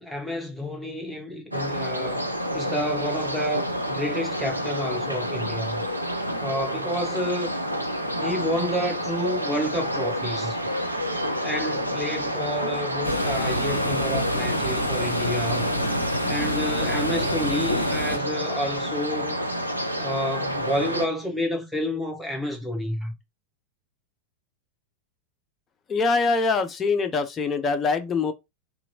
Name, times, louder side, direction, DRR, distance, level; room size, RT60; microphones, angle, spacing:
voice 1, 0.0-2.3 2.5-5.8 6.4-7.5 8.2-10.6 11.4-15.7 16.2-19.4 20.0-23.1, left 1 dB, ahead, 0.8 m, -30 dB
sound 1, 1.5-21.1, equal, 85° right, 0.4 m, -29 dB
sound 2, 13.0-18.2, equal, 85° left, 0.5 m, -27 dB
voice 2, 25.9-28.3, left 4 dB, 20° left, 0.4 m, -23 dB
2.8 x 2.4 x 2.6 m
figure-of-eight pair, 90°, 0 cm